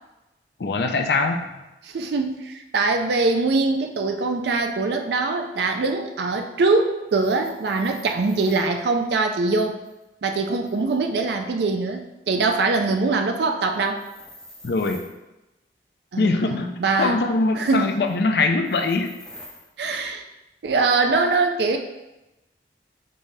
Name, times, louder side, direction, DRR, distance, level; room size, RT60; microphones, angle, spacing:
voice 1, 0.6-1.6 14.6-15.0 16.2-19.1, left 3 dB, 70° left, 5 dB, 0.5 m, -22 dB
voice 2, 1.8-9.8 10.2-14.0 16.1-17.2 17.5-17.9 19.8-20.2 20.6-21.8, right 3 dB, 75° right, 5 dB, 0.4 m, -23 dB
sound 1, 7.1-8.7 9.8-11.2 13.7-15.2 17.5-18.2 18.6-19.7, left 1 dB, 5° left, 0.6 m, -47 dB
5.3 x 3.2 x 2.7 m, 0.98 s
head